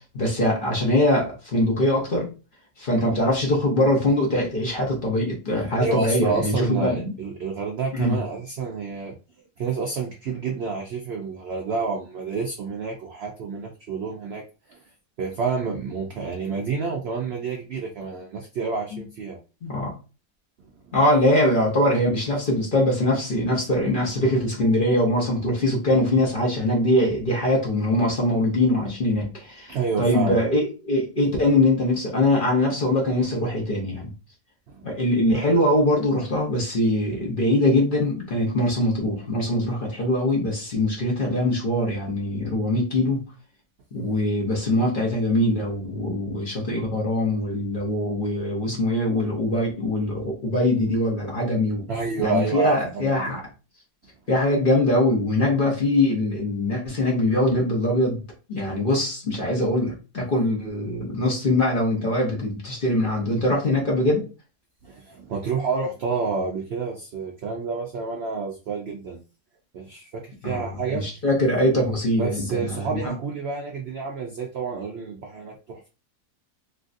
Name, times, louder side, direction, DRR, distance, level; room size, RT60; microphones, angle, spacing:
voice 1, 0.1-2.3 2.8-7.1 7.9-8.2 18.9-19.0 19.6-19.9 20.9-34.1 34.8-43.2 43.9-51.9 52.2-53.4 54.3-58.2 58.5-64.2 70.4-70.7 70.9-73.1, left 1 dB, 45° left, -3 dB, 0.8 m, -22 dB
voice 2, 5.8-9.2 9.6-14.8 15.2-19.4 29.7-30.4 34.7-34.9 51.9-53.3 64.8-69.2 69.7-71.1 72.1-75.9, right 5 dB, 85° right, 1 dB, 0.5 m, -29 dB
3.1 x 2.4 x 2.5 m, 0.32 s
omnidirectional pair, 1.7 m